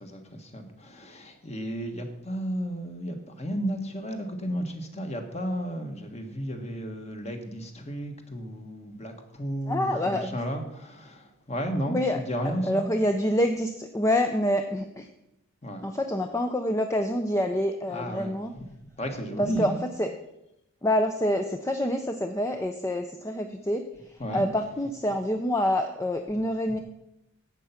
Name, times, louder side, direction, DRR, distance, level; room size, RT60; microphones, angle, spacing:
voice 1, 0.0-12.9 15.6-15.8 17.9-18.6 19.0-19.8 24.2-24.5, equal, 30° left, 5 dB, 1.5 m, -33 dB
voice 2, 9.7-10.4 11.9-12.2 12.4-15.1 15.8-18.5 19.4-20.1 20.8-26.8, left 1 dB, 15° left, 6 dB, 0.5 m, -27 dB
11.5 x 8.0 x 5.8 m, 0.87 s
head